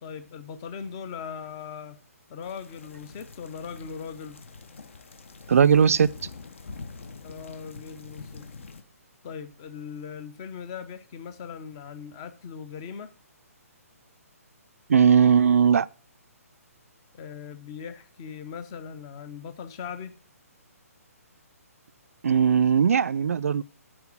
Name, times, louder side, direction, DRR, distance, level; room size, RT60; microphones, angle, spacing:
voice 1, 0.0-2.0 2.3-4.4 7.2-8.4 9.2-13.1 17.1-20.2, left 6 dB, 15° left, 0.6 m, -39 dB
sound 1, 2.4-8.8, left 4 dB, 55° left, 1.2 m, -44 dB
voice 2, 5.5-6.1 14.9-15.9 22.2-23.6, right 7 dB, 65° right, 0.4 m, -19 dB
9.8 x 4.9 x 7.3 m
hypercardioid pair, 180°, 8 cm